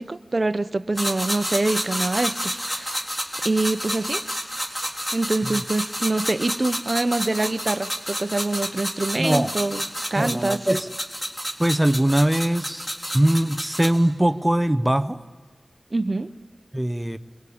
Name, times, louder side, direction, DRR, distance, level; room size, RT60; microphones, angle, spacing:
voice 1, 0.0-3.1 3.4-4.2 4.8-9.8 10.1-10.6 15.9-16.3, right 2 dB, 50° right, 0.9 m, -25 dB
sound 1, 1.0-14.0, equal, 20° left, 4.1 m, -30 dB
voice 2, 9.2-9.5 10.2-10.9 11.6-12.9 13.1-15.2 16.7-17.2, right 1 dB, 15° right, 1.0 m, -21 dB
27.5 x 23.5 x 8.7 m
wide cardioid pair, 55°, 0 cm